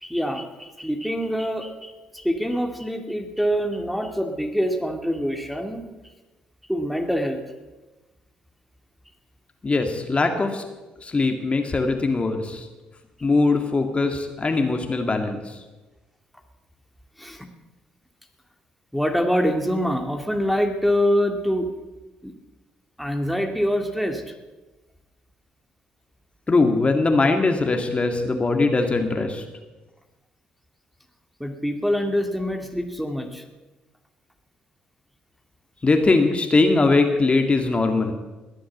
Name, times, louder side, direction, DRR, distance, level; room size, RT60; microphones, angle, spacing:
voice 1, 0.0-5.8 6.7-7.4 17.2-17.5 18.9-21.7 22.2-22.3 23.0-24.2 31.4-33.4, equal, ahead, 3 dB, 2.1 m, -25 dB
voice 2, 9.6-10.6 11.0-12.7 13.2-15.6 26.5-29.4 35.8-38.1, left 3 dB, 30° left, 5 dB, 2.1 m, -21 dB
21.0 x 7.7 x 7.3 m, 1.1 s
hypercardioid pair, 50°, 4 cm